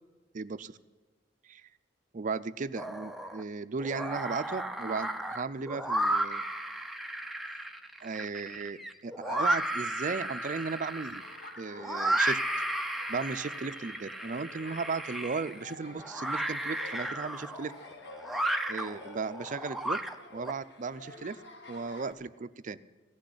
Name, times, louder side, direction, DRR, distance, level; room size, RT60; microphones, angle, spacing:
voice 1, 0.3-0.8 1.4-1.7 2.1-6.4 7.5-7.6 8.0-11.2 11.6-12.4 13.1-17.7 18.7-20.0 20.3-21.4 21.7-22.8, right 4 dB, 45° right, 13 dB, 0.5 m, -36 dB
sound 1, 2.8-3.4 3.8-20.5, right 1 dB, ahead, 0.6 m, -34 dB
Laughter, 11.2-22.1, left 2 dB, 65° left, 1.4 m, -50 dB
15.5 x 6.4 x 10.0 m, 1.3 s
head